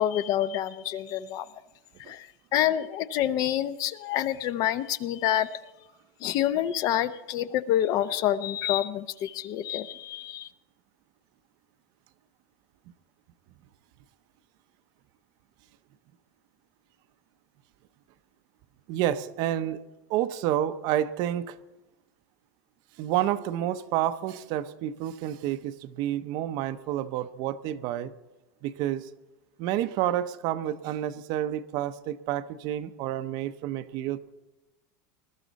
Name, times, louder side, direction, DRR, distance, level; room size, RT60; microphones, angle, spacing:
voice 1, 0.0-1.5 2.1-5.5 6.2-10.5, left 11 dB, 40° left, 14 dB, 0.6 m, -27 dB
voice 2, 18.9-19.8 20.1-21.6 23.0-28.1 28.6-29.1 29.6-34.2, right 12 dB, 45° right, 12 dB, 0.7 m, -29 dB
21.0 x 12.5 x 4.0 m, 1.1 s
supercardioid pair, 160°, 10 cm